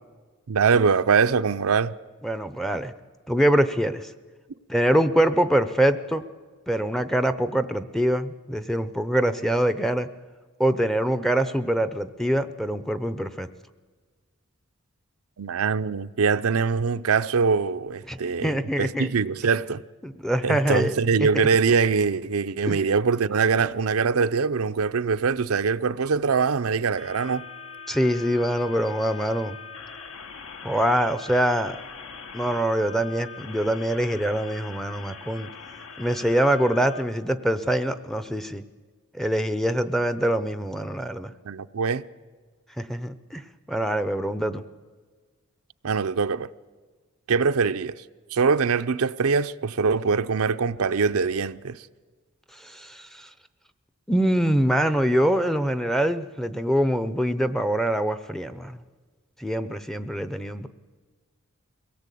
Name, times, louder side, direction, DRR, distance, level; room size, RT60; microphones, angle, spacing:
voice 1, 0.5-1.9 15.4-19.8 20.4-27.4 41.4-42.1 45.8-46.5 47.3-48.0 48.3-51.8, right 5 dB, 75° right, 0.6 m, -23 dB
voice 2, 2.2-2.9 3.3-4.1 4.7-6.2 6.7-10.1 10.6-13.5 18.1-19.1 20.0-21.5 22.7-22.8 27.9-29.6 30.6-31.8 32.3-35.5 36.0-38.6 39.1-41.3 42.8-44.6 52.5-53.3 54.1-58.8 59.4-60.7, right 1 dB, ahead, 0.6 m, -24 dB
sound 1, 27.0-37.0, left 5 dB, 65° left, 1.2 m, -42 dB
23.0 x 17.5 x 8.4 m
head